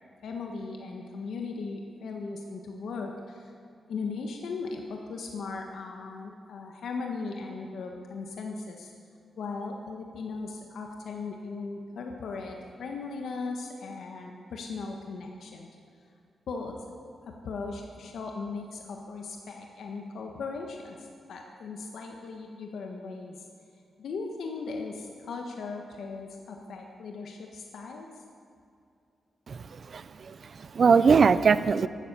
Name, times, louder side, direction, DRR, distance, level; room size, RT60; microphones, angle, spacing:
voice 1, 0.2-3.5 3.9-8.9 9.4-15.7 16.5-16.8 17.3-23.4 24.0-28.2, left 4 dB, 80° left, 2 dB, 1.5 m, -38 dB
voice 2, 29.5-31.9, right 5 dB, 45° right, 15 dB, 0.5 m, -22 dB
15.5 x 12.5 x 6.9 m, 2.5 s
wide cardioid pair, 145°, 0 cm